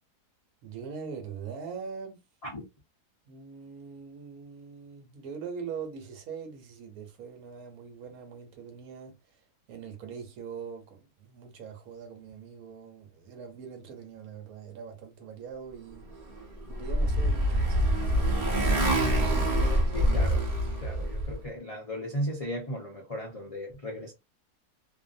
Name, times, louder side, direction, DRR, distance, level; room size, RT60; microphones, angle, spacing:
voice 1, 0.6-2.2 3.3-9.4 9.7-16.3 16.7-18.4, right 6 dB, 70° right, 1.2 m, -42 dB
Motorcycle, 16.3-21.4, right 1 dB, 40° right, 0.8 m, -25 dB
voice 2, 19.9-20.5 20.8-24.1, equal, 50° left, 0.4 m, -36 dB
2.6 x 2.5 x 2.5 m
omnidirectional pair, 1.7 m